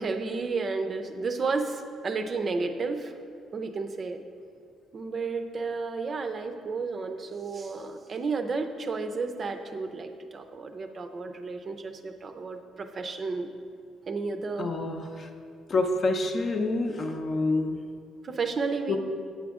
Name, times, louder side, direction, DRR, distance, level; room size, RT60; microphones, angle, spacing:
voice 1, 0.0-3.1 3.5-4.2 4.9-13.5 14.1-14.7 18.2-19.0, right 4 dB, 40° right, 7 dB, 0.5 m, -32 dB
voice 2, 14.6-15.3 15.7-17.8 18.9-19.0, left 2 dB, 40° left, 4 dB, 0.6 m, -27 dB
8.4 x 4.9 x 3.6 m, 2.3 s
cardioid pair, 95°, 0 cm